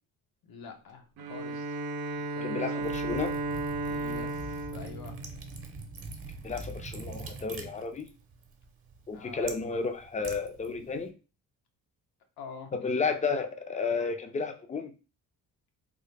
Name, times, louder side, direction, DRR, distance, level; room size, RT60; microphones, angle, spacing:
voice 1, 0.4-1.7 2.1-3.0 3.9-5.1 9.1-9.5 12.4-13.2, left 5 dB, 75° left, 3 dB, 0.9 m, -46 dB
Bowed string instrument, 1.2-6.0, right 2 dB, 85° right, 0.6 m, -35 dB
voice 2, 2.4-3.3 6.4-8.1 9.1-11.1 12.7-14.9, left 4 dB, 20° left, 6 dB, 0.5 m, -32 dB
Liquid, 2.8-11.1, right 3 dB, 40° right, 0.8 m, -44 dB
3.6 x 2.0 x 3.3 m, 0.33 s
cardioid pair, 95°, 37 cm